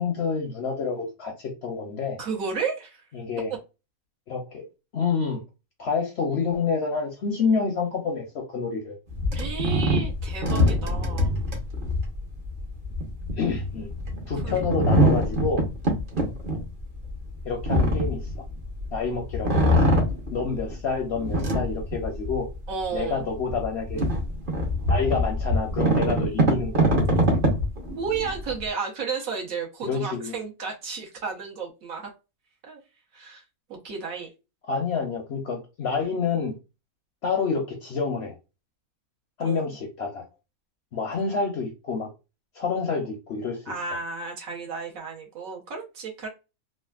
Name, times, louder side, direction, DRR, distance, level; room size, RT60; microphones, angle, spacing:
voice 1, 0.0-2.2 3.1-3.5 4.3-4.6 4.9-5.4 5.8-9.0 13.4-13.9 14.3-15.6 17.4-18.2 18.9-19.7 20.3-22.5 22.9-24.0 24.9-27.0 29.8-30.3 34.7-36.6 37.2-38.3 39.4-40.2 40.9-42.1 42.5-43.6, left 5 dB, 60° left, 0.7 m, -28 dB
voice 2, 2.2-3.1 9.3-11.3 14.4-14.5 22.7-23.3 27.9-32.1 32.6-32.8 33.1-33.4 33.7-34.3 39.4-39.6 43.7-46.3, right 5 dB, 70° right, 1.3 m, -32 dB
sound 1, 9.1-18.9 19.3-20.7 21.2-22.5 23.0-23.1 23.5-28.6, equal, 40° right, 0.9 m, -24 dB
3.2 x 2.4 x 2.3 m
omnidirectional pair, 1.5 m